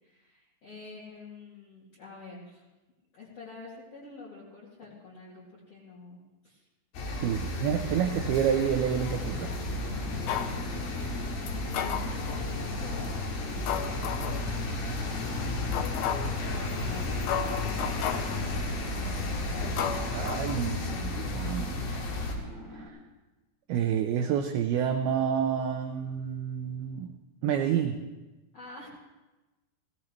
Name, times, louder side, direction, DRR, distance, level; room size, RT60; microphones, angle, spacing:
voice 1, 0.0-2.6 3.1-6.6 7.1-7.8 10.4-14.5 14.8-19.0 19.5-19.8 28.5-28.9, left 3 dB, 40° left, -8 dB, 2.9 m, -48 dB
sound 1, 6.9-22.3, left 2 dB, 60° left, 3.3 m, -33 dB
voice 2, 7.2-9.6 20.1-22.0 22.7-23.0 23.7-27.1 27.4-28.0, right 8 dB, 90° right, 6 dB, 2.1 m, -29 dB
sound 2, 9.2-22.9, left 1 dB, 5° left, 2.2 m, -46 dB
sound 3, 10.3-10.6 11.5-12.4 13.0-13.2 13.7-14.5 15.0-15.1 15.7-16.4 17.0-17.1 17.3-18.4 19.0-19.2 19.8-21.0 21.3-21.4, left 8 dB, 85° left, 2.2 m, -33 dB
17.5 x 17.0 x 3.3 m, 1.1 s
omnidirectional pair, 5.2 m